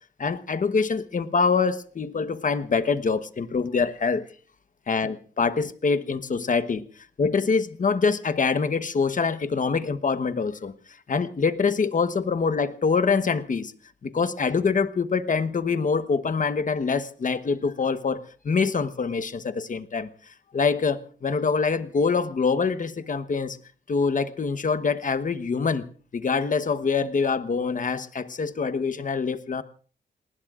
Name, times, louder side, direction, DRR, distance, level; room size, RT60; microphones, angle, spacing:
voice 1, 0.2-4.2 4.9-6.8 7.2-10.7 11.1-13.7 14.0-20.1 20.5-23.6 23.9-29.6, left 5 dB, 45° left, 1.1 m, -25 dB
28.5 x 20.0 x 2.5 m
cardioid pair, 90°, 18 cm